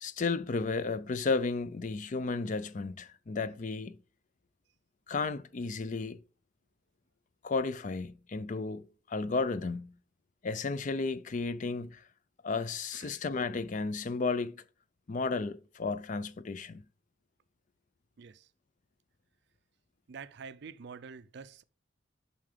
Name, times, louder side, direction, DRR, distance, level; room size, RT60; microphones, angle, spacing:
voice 1, 0.0-4.0 5.1-6.2 7.4-9.9 10.4-12.0 12.4-14.6 15.1-16.8, left 4 dB, 40° left, 0.4 m, -33 dB
voice 2, 20.1-21.6, right 5 dB, 55° right, 0.4 m, -47 dB
7.3 x 5.8 x 5.0 m
head